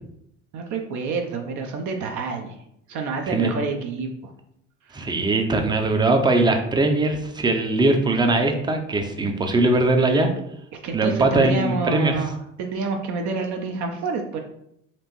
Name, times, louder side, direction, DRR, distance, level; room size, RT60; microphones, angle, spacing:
voice 1, 0.5-2.6 2.9-4.3 4.9-5.1 10.7-12.3 12.6-14.4, right 4 dB, 50° right, 3 dB, 0.6 m, -28 dB
voice 2, 4.9-10.3 10.9-12.2, right 2 dB, 10° right, 5 dB, 0.5 m, -20 dB
4.3 x 2.5 x 3.0 m, 0.76 s
hypercardioid pair, 65°, 37 cm